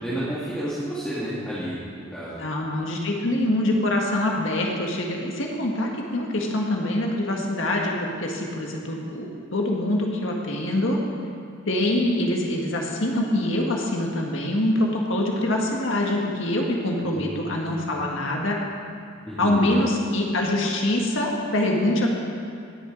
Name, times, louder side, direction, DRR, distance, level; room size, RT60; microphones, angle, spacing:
voice 1, 0.0-2.4 17.0-17.7 19.3-19.8, right 1 dB, 5° left, -11 dB, 2.2 m, -31 dB
voice 2, 2.4-11.0 11.7-18.6 19.4-22.1, left 1 dB, 70° left, 0 dB, 1.7 m, -24 dB
19.0 x 8.8 x 4.0 m, 2.5 s
head